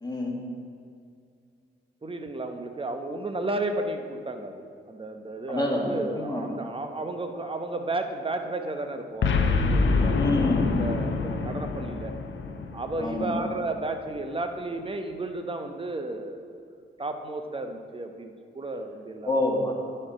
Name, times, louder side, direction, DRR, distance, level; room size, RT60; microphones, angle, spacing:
voice 1, 0.0-0.4 5.5-6.5 10.1-10.7 13.0-13.4 19.3-19.7, left 1 dB, 20° left, -2 dB, 1.8 m, -27 dB
voice 2, 2.0-10.2 10.7-12.1 12.7-19.4, right 2 dB, 25° right, 6 dB, 0.9 m, -33 dB
Boom, 9.2-13.6, left 4 dB, 70° left, 0.7 m, -26 dB
11.0 x 4.5 x 5.0 m, 2.4 s
cardioid pair, 60°, 20 cm